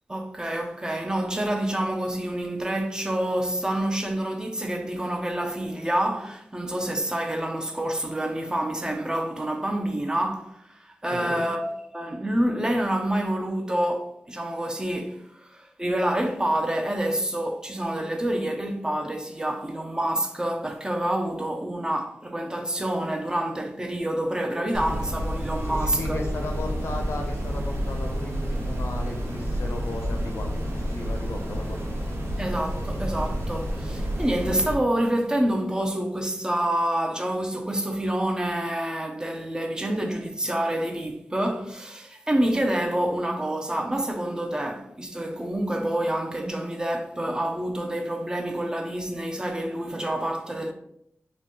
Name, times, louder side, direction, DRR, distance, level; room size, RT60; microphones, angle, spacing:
voice 1, 0.1-26.2 32.4-50.7, right 1 dB, 15° right, 0.4 m, -27 dB
voice 2, 11.1-11.5 25.6-31.8, left 2 dB, 80° left, 0.6 m, -35 dB
sound 1, 24.7-34.7, equal, 90° right, 0.7 m, -29 dB
3.5 x 2.1 x 3.7 m
wide cardioid pair, 120°, 4 cm